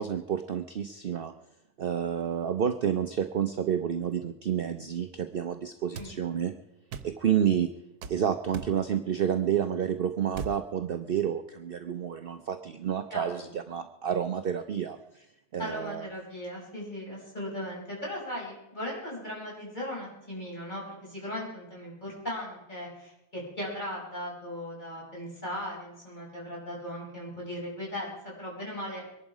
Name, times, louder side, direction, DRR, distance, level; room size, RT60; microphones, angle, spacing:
voice 1, 0.0-1.3 1.8-6.5 7.0-7.7 8.1-15.0 15.5-16.1, right 8 dB, 50° right, 8 dB, 0.7 m, -29 dB
sound 1, 5.9-6.1 6.9-7.1 8.0-8.2 8.5-8.8 10.3-10.6, right 5 dB, 80° right, 1.4 m, -38 dB
voice 2, 13.1-13.5 15.6-29.0, left 1 dB, 30° left, -4 dB, 5.7 m, -38 dB
23.0 x 11.0 x 4.9 m, 0.87 s
omnidirectional pair, 1.6 m